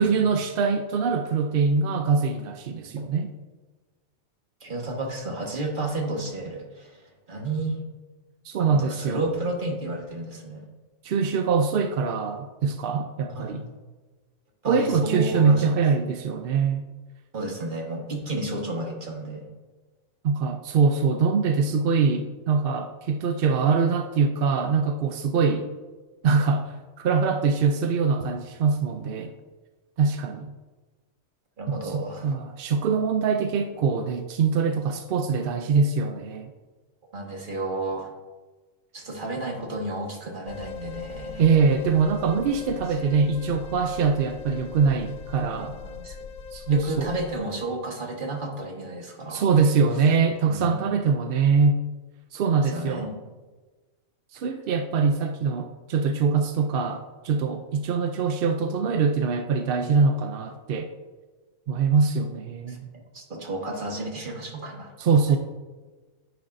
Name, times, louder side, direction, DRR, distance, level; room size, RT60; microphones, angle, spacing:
voice 1, 0.0-3.3 8.4-9.2 11.0-13.6 14.7-16.8 20.2-25.7 26.2-26.7 27.0-29.3 30.0-30.5 31.7-36.5 41.4-45.8 46.5-47.1 49.3-51.8 52.3-53.1 54.3-60.9 61.7-62.8 65.0-65.4, right 5 dB, 65° right, 6 dB, 0.6 m, -23 dB
voice 2, 4.6-7.8 8.6-10.6 13.3-13.8 14.6-15.7 17.3-19.5 31.6-32.3 37.1-38.1 38.9-41.4 42.9-43.1 45.7-46.3 46.7-49.4 50.5-50.8 52.5-53.2 62.7-64.9, right 2 dB, 40° right, 1 dB, 1.5 m, -32 dB
sound 1, 40.5-47.4, left 5 dB, 85° left, 1.1 m, -40 dB
10.0 x 9.6 x 2.6 m, 1.3 s
omnidirectional pair, 1.4 m